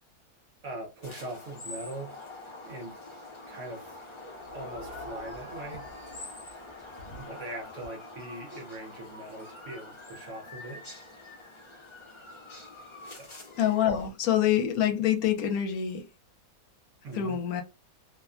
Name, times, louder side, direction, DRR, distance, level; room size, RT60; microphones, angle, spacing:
voice 1, 0.6-2.1 2.6-4.0 4.5-5.8 7.2-11.0 13.1-13.3 17.0-17.4, right 1 dB, 60° right, 1.0 m, -41 dB
sound 1, 1.0-14.1, left 2 dB, 30° left, 0.5 m, -45 dB
sound 2, 4.2-10.5, equal, 30° right, 0.8 m, -49 dB
voice 2, 13.6-16.1 17.1-17.6, left 10 dB, 75° left, 1.1 m, -26 dB
2.8 x 2.1 x 2.4 m
omnidirectional pair, 1.6 m